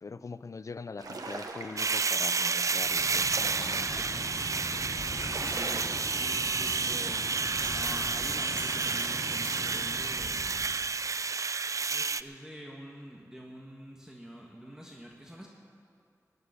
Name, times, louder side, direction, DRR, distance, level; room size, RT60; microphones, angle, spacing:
voice 1, 0.0-4.0, left 4 dB, 60° left, 15 dB, 0.5 m, -42 dB
sound 1, 1.0-2.0 2.6-4.2 4.7-4.8 5.0-6.4, right 3 dB, 90° right, 1.1 m, -42 dB
sound 2, 1.8-12.2, right 4 dB, 60° right, 0.4 m, -30 dB
Wind, 2.6-10.7, left 1 dB, 15° left, 4.0 m, -41 dB
voice 2, 5.4-7.3 7.7-10.6 11.9-15.5, equal, 10° right, -1 dB, 1.4 m, -46 dB
18.0 x 6.9 x 9.8 m, 2.4 s
wide cardioid pair, 70°, 6 cm